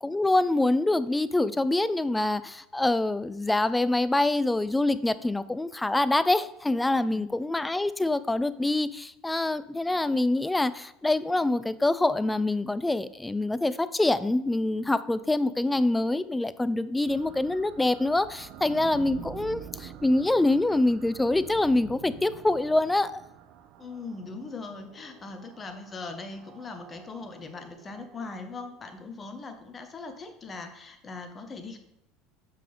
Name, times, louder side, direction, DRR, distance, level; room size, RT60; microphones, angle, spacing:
voice 1, 0.0-23.2, left 2 dB, 10° left, 15 dB, 0.3 m, -25 dB
sound 1, 17.1-29.0, right 9 dB, 50° right, 0.5 m, -47 dB
voice 2, 23.8-31.8, left 3 dB, 25° left, 7 dB, 1.0 m, -40 dB
7.4 x 5.3 x 3.4 m, 0.87 s
figure-of-eight pair, 70°, 0 cm